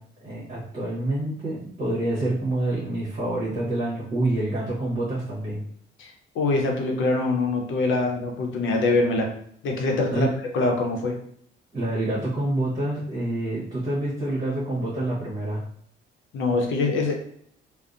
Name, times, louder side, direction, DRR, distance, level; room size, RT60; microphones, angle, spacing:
voice 1, 0.2-5.6 10.1-10.3 11.7-15.6, right 1 dB, 40° right, -7 dB, 0.9 m, -27 dB
voice 2, 6.0-9.3 9.6-10.3 10.5-11.2 16.3-17.1, left 3 dB, 75° left, 1 dB, 0.6 m, -24 dB
2.6 x 2.0 x 2.4 m, 0.64 s
cardioid pair, 90°, 20 cm